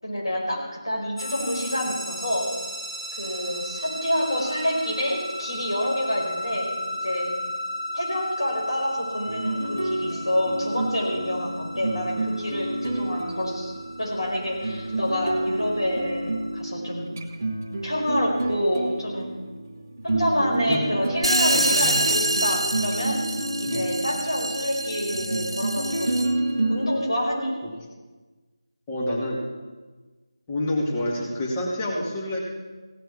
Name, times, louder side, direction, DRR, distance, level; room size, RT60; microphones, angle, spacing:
voice 1, 0.0-2.5 3.1-6.7 7.0-7.3 7.9-13.7 14.0-17.1 17.8-19.3 20.0-23.2 23.6-26.2 26.7-27.5, equal, 60° left, -1 dB, 5.1 m, -27 dB
sound 1, 1.2-16.6, left 1 dB, 85° left, 3.5 m, -36 dB
sound 2, 9.3-26.9, right 2 dB, 30° right, 1.1 m, -30 dB
sound 3, 21.2-26.5, right 1 dB, 80° right, 1.1 m, -26 dB
voice 2, 21.5-21.9 23.7-23.9 28.9-29.4 30.5-32.4, left 1 dB, 15° left, -4 dB, 2.1 m, -28 dB
17.0 x 7.3 x 8.5 m, 1.3 s
figure-of-eight pair, 165°, 3 cm